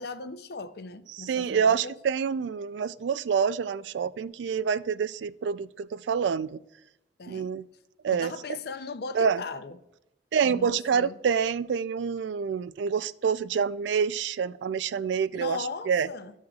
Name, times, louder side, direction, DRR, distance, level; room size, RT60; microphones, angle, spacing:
voice 1, 0.0-2.0 7.2-7.5 8.1-9.8 10.4-11.1 15.3-16.3, left 4 dB, 60° left, 0.5 m, -38 dB
voice 2, 1.1-6.6 7.3-7.6 8.0-8.3 9.1-9.4 10.3-15.6 15.9-16.1, right 6 dB, 85° right, 0.3 m, -27 dB
13.5 x 6.3 x 2.3 m
head